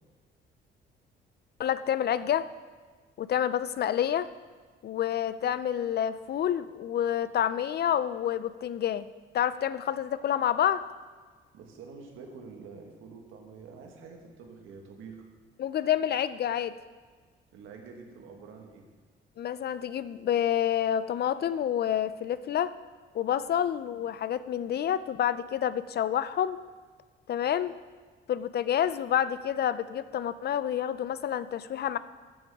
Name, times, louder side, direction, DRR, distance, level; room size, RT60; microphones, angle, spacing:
voice 1, 1.6-2.5 3.2-4.3 4.8-9.1 9.3-10.8 15.6-16.7 19.4-22.7 23.1-26.6 27.3-27.7 28.3-32.0, left 10 dB, 55° left, 14 dB, 0.5 m, -28 dB
voice 2, 11.5-15.2 17.5-18.8, right 5 dB, 90° right, 2 dB, 1.6 m, -47 dB
13.5 x 7.6 x 3.6 m, 1.5 s
cardioid pair, 90°, 20 cm